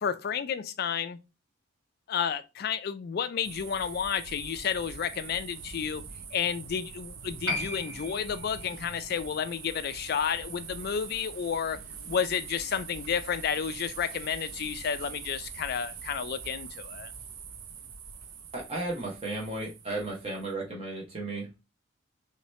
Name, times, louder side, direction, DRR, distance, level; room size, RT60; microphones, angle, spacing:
voice 1, 0.0-1.2 2.1-6.0 6.3-11.8 12.1-17.1, left 7 dB, 50° left, 0.3 m, -31 dB
sound 1, 3.4-20.5, right 6 dB, 85° right, 0.7 m, -44 dB
Piano, 7.4-14.4 14.7-14.8, left 2 dB, 70° right, 2.0 m, -41 dB
voice 2, 18.5-21.6, right 2 dB, 30° right, 0.7 m, -34 dB
3.1 x 2.8 x 3.1 m
head